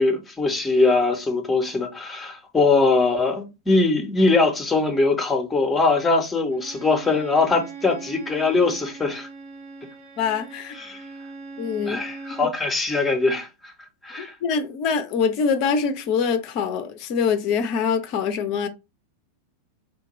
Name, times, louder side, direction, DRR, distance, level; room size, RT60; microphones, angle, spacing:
voice 1, 0.0-9.3 10.8-11.0 11.9-13.7 14.0-14.3, left 3 dB, 15° left, 0.7 m, -21 dB
Bowed string instrument, 6.5-12.6, right 4 dB, 45° right, 0.7 m, -40 dB
voice 2, 10.2-10.8 11.6-12.0 14.2-18.7, left 6 dB, 40° left, 0.4 m, -24 dB
3.3 x 2.2 x 3.0 m
figure-of-eight pair, 90°, 0 cm